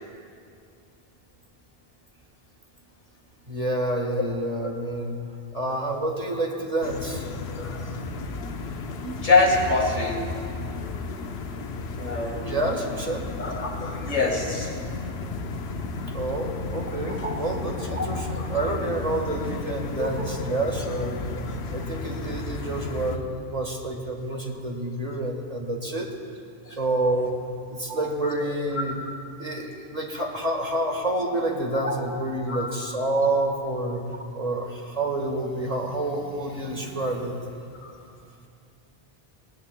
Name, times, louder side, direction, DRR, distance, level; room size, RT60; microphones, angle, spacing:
voice 1, 3.5-5.2 5.5-7.3 12.4-13.3 16.1-21.3 21.7-26.1 26.7-27.4 27.7-28.9 29.4-34.0 34.3-37.3, right 2 dB, 35° right, 1 dB, 1.5 m, -28 dB
sound 1, 6.8-23.2, left 3 dB, 80° left, 1.1 m, -33 dB
voice 2, 7.6-7.9 9.0-10.3 12.0-12.5 13.4-14.8 17.1-17.4 17.9-18.5 20.0-20.1 21.3-21.4 21.8-21.9 26.7-26.8 27.9-28.0 31.8-32.0 32.5-32.7 36.8-36.9 37.8-37.9, left 3 dB, 45° left, 1 dB, 1.8 m, -26 dB
19.5 x 19.0 x 2.2 m, 2.4 s
omnidirectional pair, 1.1 m